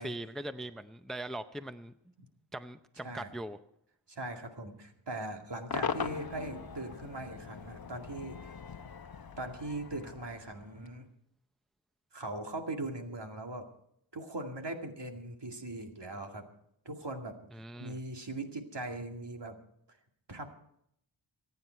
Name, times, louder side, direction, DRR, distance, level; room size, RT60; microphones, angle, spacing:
voice 1, 0.0-1.9 2.5-3.6 17.5-18.0, right 1 dB, ahead, 10 dB, 0.6 m, -41 dB
voice 2, 3.0-3.3 4.1-8.5 9.4-11.1 12.1-13.7 14.1-16.4 16.9-17.4 17.8-19.6 19.9-20.0 20.3-20.5, right 2 dB, 65° right, 3 dB, 2.3 m, -40 dB
Cheering / Crowd / Fireworks, 5.7-11.0, left 6 dB, 50° left, 0.8 m, -40 dB
25.5 x 9.5 x 4.5 m, 0.72 s
wide cardioid pair, 60°, 46 cm